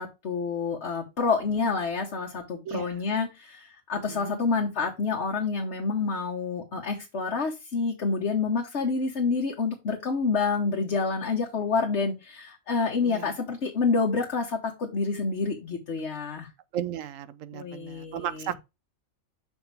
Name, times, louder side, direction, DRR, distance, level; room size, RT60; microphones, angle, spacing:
voice 1, 0.0-16.5 17.5-18.5, left 4 dB, 55° left, 1.5 m, -28 dB
voice 2, 4.1-4.4 13.0-13.3 16.7-18.6, right 10 dB, 70° right, 1.1 m, -35 dB
6.4 x 6.2 x 3.4 m
omnidirectional pair, 1.4 m